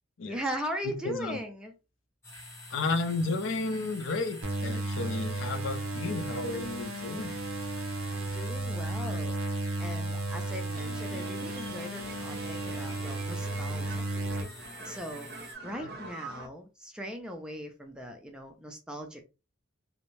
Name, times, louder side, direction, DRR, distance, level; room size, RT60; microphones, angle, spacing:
voice 1, 0.2-1.7 8.1-9.3 9.8-14.1 14.8-19.3, equal, 5° right, 0.3 m, -39 dB
voice 2, 0.8-1.4 2.7-7.3 15.8-15.9, left 3 dB, 65° left, 0.5 m, -32 dB
sound 1, 2.2-15.6, left 1 dB, 15° left, 0.8 m, -47 dB
sound 2, 4.4-14.4, right 2 dB, 90° right, 0.6 m, -34 dB
sound 3, 10.7-16.5, right 3 dB, 50° right, 0.6 m, -45 dB
2.6 x 2.0 x 3.0 m
head